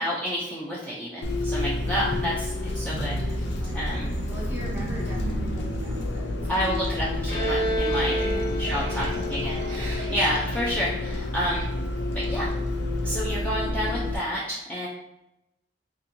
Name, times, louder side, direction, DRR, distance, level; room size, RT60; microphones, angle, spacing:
voice 1, 0.0-3.5 3.7-4.1 6.5-8.2 8.5-11.7 12.3-12.5 13.0-14.9, equal, 10° left, -7 dB, 0.5 m, -29 dB
Bus, 1.2-14.1, left 2 dB, 70° left, 0.5 m, -29 dB
voice 2, 1.8-2.2 3.6-7.2 8.2-8.5 8.8-9.3, right 1 dB, 10° right, -4 dB, 1.0 m, -41 dB
sound 1, 2.9-3.4 3.7-10.6, right 3 dB, 75° right, 0.4 m, -39 dB
Bowed string instrument, 7.3-10.8, right 1 dB, 45° left, 1.4 m, -30 dB
4.1 x 2.6 x 2.7 m, 0.89 s
head